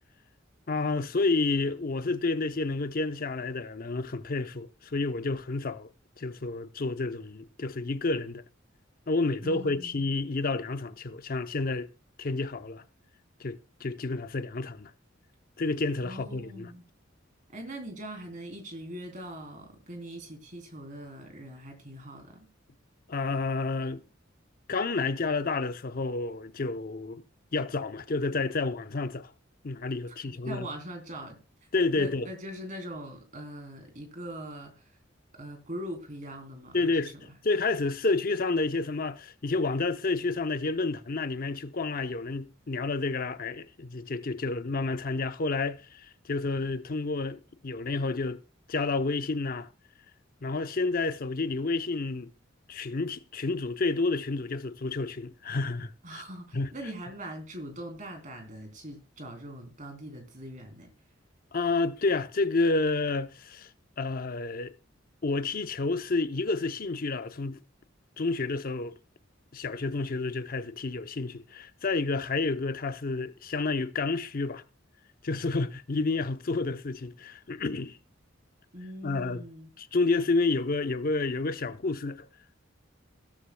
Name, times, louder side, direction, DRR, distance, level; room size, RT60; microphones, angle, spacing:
voice 1, 0.7-5.9 6.2-8.4 9.1-11.9 12.2-12.8 13.4-14.9 15.6-16.7 23.1-24.0 24.7-27.2 27.5-29.3 29.6-30.7 31.7-32.3 36.7-37.1 37.4-45.8 46.3-48.4 48.7-49.7 50.4-52.3 52.7-56.2 56.5-56.7 61.5-63.7 64.0-64.7 65.2-67.6 68.2-68.9 69.5-74.6 75.2-78.0 79.0-79.4 79.8-82.3, left 3 dB, 50° left, 0.7 m, -30 dB
voice 2, 9.4-10.1 16.0-16.8 17.5-22.5 30.2-31.4 31.9-35.0 35.3-37.3 56.0-60.9 78.7-79.7, right 1 dB, 40° right, 3.2 m, -42 dB
16.0 x 13.0 x 2.2 m
head